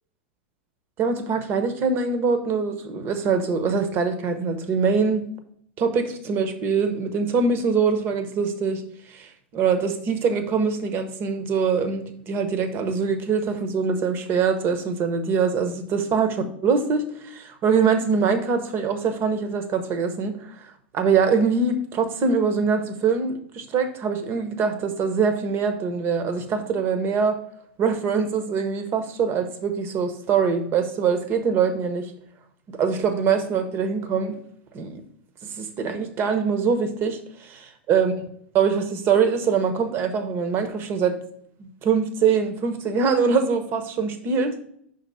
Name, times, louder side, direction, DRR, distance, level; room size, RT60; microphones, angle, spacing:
voice 1, 1.0-5.3 5.8-8.8 9.1-16.3 16.6-20.6 20.9-27.4 27.8-32.1 32.7-34.4 34.7-35.0 35.4-38.1 38.5-41.2 41.6-44.5, right 5 dB, 35° right, 8 dB, 1.1 m, -23 dB
5.8 x 4.1 x 5.5 m, 0.67 s
hypercardioid pair, 95°, 6 cm